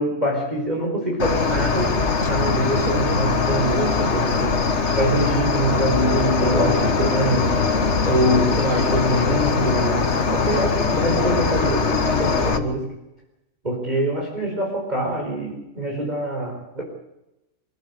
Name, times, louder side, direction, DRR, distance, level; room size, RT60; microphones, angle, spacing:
voice 1, 0.0-2.0 2.2-7.5 8.0-12.9 13.6-16.8, right 1 dB, 35° right, -1 dB, 4.9 m, -24 dB
Cricket, 1.2-12.6, left 4 dB, 60° left, 1.9 m, -21 dB
25.5 x 14.0 x 8.3 m, 0.92 s
omnidirectional pair, 1.3 m